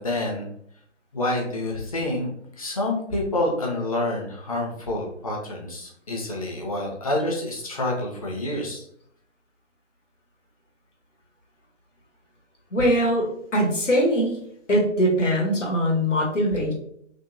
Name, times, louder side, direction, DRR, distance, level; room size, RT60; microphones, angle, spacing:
voice 1, 0.0-0.5 1.1-2.3 2.6-8.9, left 1 dB, 30° left, -1 dB, 0.6 m, -28 dB
voice 2, 12.7-14.4 14.7-16.7, equal, 80° left, -1 dB, 1.0 m, -22 dB
3.4 x 2.1 x 2.6 m, 0.69 s
figure-of-eight pair, 145°, 36 cm